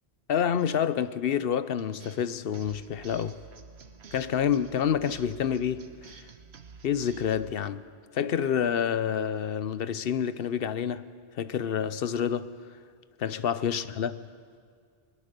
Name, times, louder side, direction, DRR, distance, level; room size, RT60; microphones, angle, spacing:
voice 1, 0.3-3.4 4.1-6.2 6.8-7.8 8.1-11.1 11.3-12.6 13.2-14.3, left 8 dB, 65° left, 0.9 m, -28 dB
sound 1, 1.8-7.5, right 5 dB, 80° right, 1.3 m, -50 dB
21.5 x 20.5 x 6.6 m
omnidirectional pair, 1.1 m